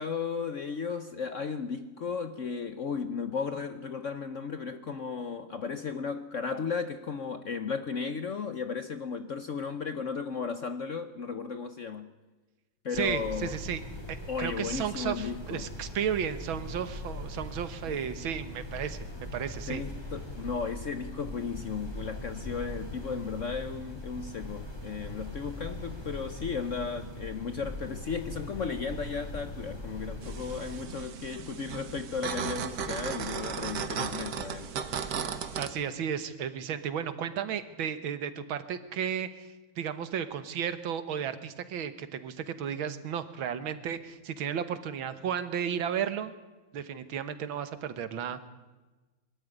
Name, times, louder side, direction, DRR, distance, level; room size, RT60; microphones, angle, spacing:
voice 1, 0.0-12.1 12.8-13.6 14.3-15.7 17.8-18.3 19.7-34.7, left 5 dB, 55° left, 10 dB, 0.9 m, -35 dB
sound 1, 12.9-30.9, left 1 dB, 10° left, 3.4 m, -41 dB
voice 2, 12.9-13.8 14.1-19.8 35.6-46.3 46.7-48.5, right 8 dB, 80° right, 12 dB, 2.0 m, -34 dB
sound 2, 30.2-35.7, right 7 dB, 60° right, 1.7 m, -35 dB
22.5 x 13.0 x 9.9 m, 1.2 s
omnidirectional pair, 2.2 m